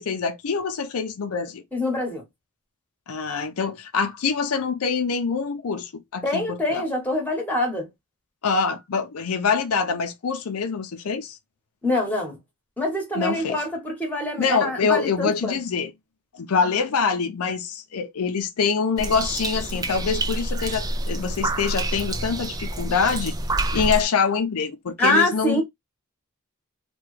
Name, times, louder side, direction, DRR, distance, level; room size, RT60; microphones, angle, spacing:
voice 1, 0.0-1.6 3.1-6.8 8.4-11.4 13.2-13.6 14.4-15.9 16.3-23.3 23.7-25.6, left 5 dB, 85° left, 0.5 m, -25 dB
voice 2, 1.7-2.2 6.2-7.9 11.8-12.4 12.8-15.6 25.0-25.6, left 1 dB, 10° left, 1.1 m, -25 dB
sound 1, 19.0-24.0, right 2 dB, 15° right, 0.3 m, -28 dB
3.0 x 2.3 x 3.1 m
head